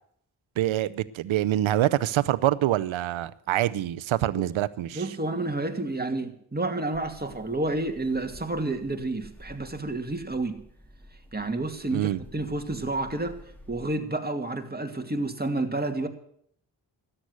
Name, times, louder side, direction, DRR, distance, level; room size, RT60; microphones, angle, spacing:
voice 1, 0.6-5.0 11.9-12.2, right 13 dB, 80° right, 0.7 m, -25 dB
voice 2, 4.9-10.6 11.3-13.4 13.7-16.1, right 2 dB, 20° right, 2.4 m, -30 dB
sound 1, 6.9-13.9, equal, 5° left, 3.6 m, -50 dB
13.0 x 10.0 x 8.0 m
supercardioid pair, 40°, 46 cm